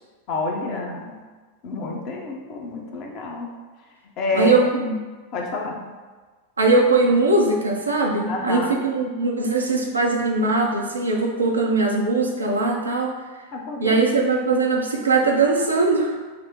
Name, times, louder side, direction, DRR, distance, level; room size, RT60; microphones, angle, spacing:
voice 1, 0.3-1.2 1.6-3.5 4.2-4.6 5.3-5.9 8.3-8.7 13.5-14.0, left 2 dB, 40° left, 0 dB, 0.8 m, -28 dB
voice 2, 4.3-5.0 6.6-13.1 13.8-16.2, right 3 dB, 80° right, 0 dB, 0.6 m, -20 dB
5.0 x 2.0 x 4.5 m, 1.3 s
figure-of-eight pair, 90°, 0 cm